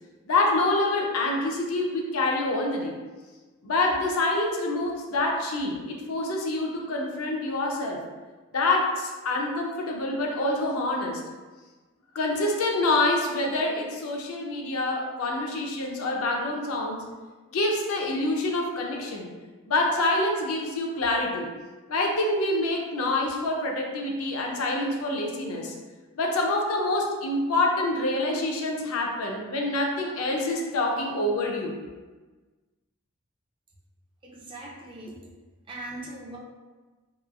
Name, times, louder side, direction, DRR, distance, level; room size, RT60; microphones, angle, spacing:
voice 1, 0.3-3.0 3.6-8.0 8.5-11.2 12.1-17.0 17.5-19.3 19.7-21.5 21.9-25.7 26.2-31.8, left 2 dB, 80° left, 0 dB, 0.5 m, -26 dB
voice 2, 34.2-35.2 35.7-36.4, right 1 dB, 25° right, -3 dB, 0.4 m, -40 dB
3.0 x 2.3 x 2.2 m, 1.3 s
head